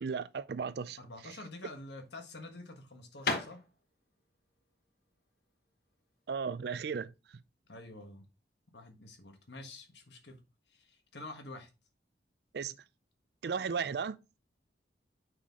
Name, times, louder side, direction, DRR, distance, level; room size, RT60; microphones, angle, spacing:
voice 1, 0.0-1.0 1.2-1.4 6.3-7.1 12.5-12.8 13.4-14.2, right 6 dB, 65° right, 0.4 m, -35 dB
voice 2, 1.0-3.6 7.7-8.3 8.7-10.4 10.7-11.7, left 2 dB, 75° left, 1.5 m, -48 dB
sound 1, 1.9-7.0, left 3 dB, 55° left, 1.2 m, -40 dB
6.7 x 5.6 x 3.6 m
head